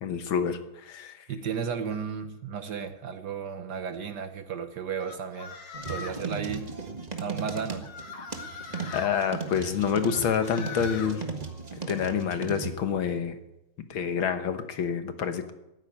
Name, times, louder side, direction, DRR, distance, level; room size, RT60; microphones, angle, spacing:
voice 1, 0.0-1.3 8.9-11.2 11.9-13.4 13.9-15.5, left 7 dB, 70° left, 1.9 m, -28 dB
voice 2, 1.3-5.6 5.9-7.9, right 6 dB, 60° right, 1.3 m, -34 dB
sound 1, 5.0-6.3 7.5-9.1 10.0-11.1, left 5 dB, 90° left, 2.4 m, -41 dB
sound 2, 5.7-12.7, right 4 dB, 20° right, 1.4 m, -37 dB
15.0 x 8.9 x 9.7 m
omnidirectional pair, 2.4 m